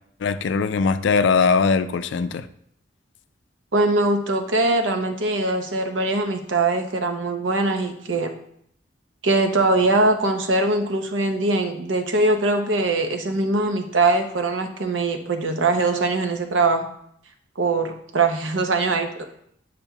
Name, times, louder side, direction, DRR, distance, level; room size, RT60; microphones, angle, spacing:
voice 1, 0.2-2.5, left 5 dB, 65° left, 0.3 m, -20 dB
voice 2, 3.7-8.3 9.2-16.8 17.6-19.2, right 2 dB, 75° right, 0.7 m, -22 dB
8.9 x 5.0 x 2.3 m
head